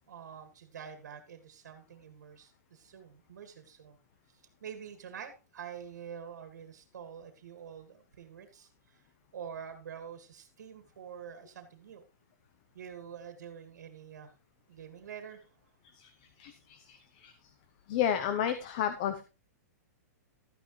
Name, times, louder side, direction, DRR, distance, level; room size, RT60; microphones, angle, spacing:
voice 1, 0.1-4.0 4.3-9.0 9.3-12.0 12.7-14.3 14.7-15.5, right 8 dB, 85° right, 7 dB, 2.0 m, -47 dB
voice 2, 16.0-17.5 17.9-19.2, left 9 dB, 30° left, 9 dB, 0.7 m, -33 dB
13.0 x 9.9 x 3.2 m, 0.31 s
hypercardioid pair, 180°, 9 cm